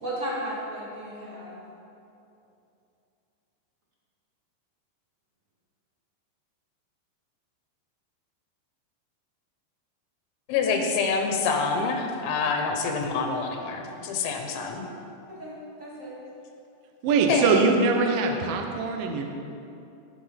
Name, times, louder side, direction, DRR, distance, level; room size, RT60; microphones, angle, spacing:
voice 1, 0.0-1.6 15.3-16.2, equal, 25° right, -7 dB, 2.0 m, -35 dB
voice 2, 10.5-14.9 17.3-17.7, left 5 dB, 90° left, 3 dB, 3.6 m, -26 dB
voice 3, 17.0-19.2, right 4 dB, 70° right, 3 dB, 2.2 m, -22 dB
17.0 x 6.3 x 5.2 m, 2.7 s
omnidirectional pair, 5.2 m